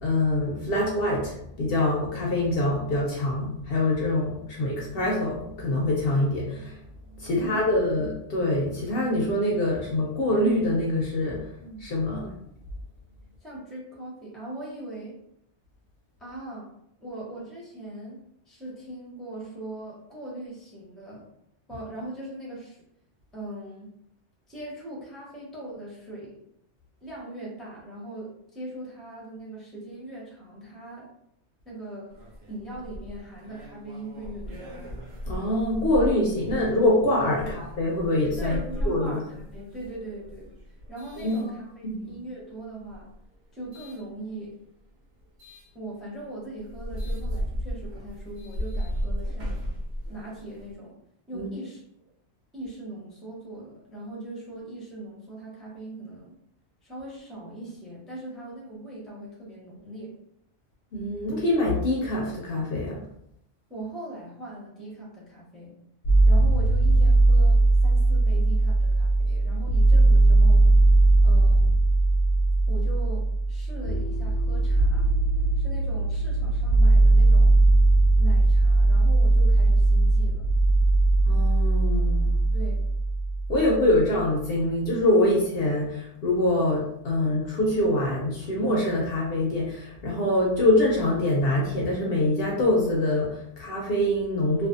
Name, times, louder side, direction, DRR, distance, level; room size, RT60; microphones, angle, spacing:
voice 1, 0.0-6.8 7.2-11.4 11.8-12.3 35.3-38.6 38.8-39.2 41.2-41.5 42.0-42.2 51.3-51.5 60.9-63.0 81.3-82.4 83.5-94.7, left 1 dB, 65° left, -2 dB, 0.7 m, -24 dB
voice 2, 7.3-7.8 11.6-11.8 13.4-15.2 16.2-16.7 17.0-21.2 21.7-22.8 23.3-23.9 24.5-26.4 27.0-31.1 31.6-32.2 32.5-34.8 37.4-37.5 38.4-40.5 40.9-43.1 43.5-44.6 45.7-49.6 50.1-51.0 51.3-51.8 52.5-56.3 56.8-60.1 63.7-65.8 66.3-70.7 71.2-71.7 72.7-75.1 75.6-77.6 78.2-80.5 82.5-82.9, right 1 dB, ahead, -5 dB, 0.6 m, -40 dB
sound 1, 32.1-42.1 42.8-44.0 45.4-45.7 46.2-46.3 46.6-50.7, equal, 75° right, 1.0 m, -35 dB
sound 2, 66.0-84.0, right 2 dB, 90° left, 1.0 m, -19 dB
2.5 x 2.3 x 2.4 m, 0.75 s
omnidirectional pair, 1.2 m